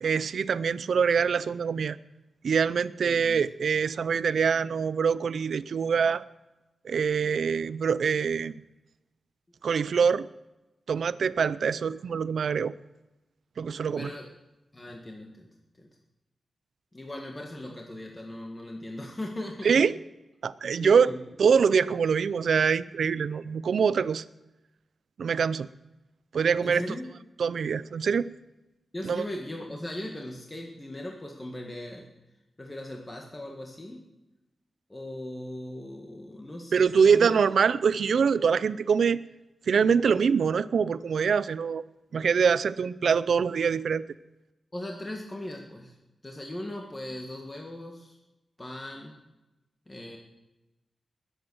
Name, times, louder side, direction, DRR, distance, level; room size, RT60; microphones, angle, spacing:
voice 1, 0.0-2.0 2.4-6.2 6.8-8.5 9.6-10.3 10.9-12.7 13.6-14.1 19.6-19.9 20.4-21.1 21.4-24.2 25.2-25.7 26.3-27.0 27.4-28.3 29.0-29.3 36.7-39.2 39.7-41.8 42.1-44.0, right 6 dB, 75° right, 16 dB, 0.5 m, -24 dB
voice 2, 3.0-3.4 13.9-14.3 14.7-15.5 15.8-15.9 16.9-19.8 20.8-21.2 26.6-27.1 28.9-32.1 32.6-34.0 34.9-37.3 44.7-46.0 46.2-48.2 48.6-49.1 49.9-50.2, left 1 dB, 20° left, 0 dB, 1.7 m, -38 dB
20.5 x 8.1 x 6.3 m, 1.0 s
wide cardioid pair, 105°, 0 cm